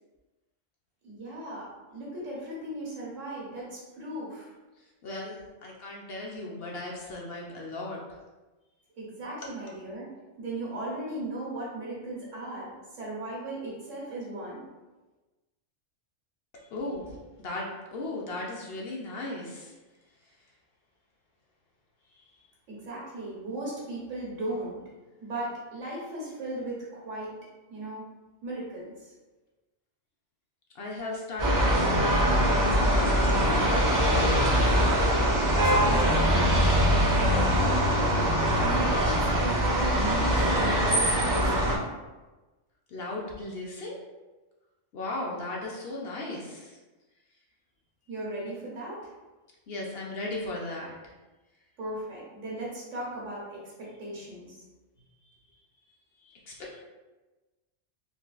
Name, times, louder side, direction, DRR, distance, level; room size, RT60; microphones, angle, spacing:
voice 1, 1.0-4.5 9.0-14.6 22.7-24.8 25.2-27.4 27.7-28.0 28.4-29.1 35.5-36.6 37.3-41.9 48.1-49.1 51.8-54.6, right 1 dB, 80° right, -5 dB, 1.5 m, -37 dB
voice 2, 5.0-8.0 16.7-19.7 30.7-33.7 42.9-44.0 44.9-46.8 49.7-50.9 56.2-56.8, left 2 dB, 60° left, -2 dB, 0.7 m, -37 dB
sound 1, 31.4-41.8, equal, 25° right, 0.4 m, -23 dB
3.8 x 2.4 x 2.4 m, 1.2 s
omnidirectional pair, 1.3 m